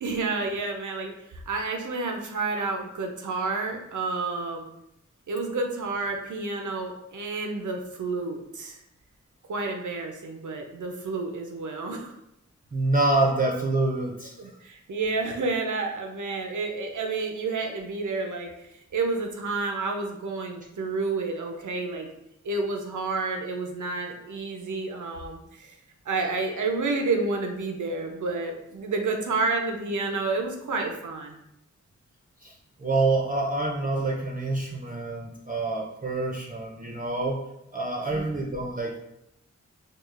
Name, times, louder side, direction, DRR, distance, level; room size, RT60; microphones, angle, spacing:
voice 1, 0.0-4.7 5.3-8.8 9.5-12.1 14.4-22.1 22.4-25.7 26.1-31.3 38.0-38.3, right 3 dB, 85° right, 3 dB, 0.6 m, -30 dB
voice 2, 12.7-14.3 32.4-37.4 37.7-39.0, right 2 dB, 30° right, -2 dB, 0.5 m, -27 dB
4.6 x 2.4 x 2.4 m, 0.82 s
wide cardioid pair, 80°, 30 cm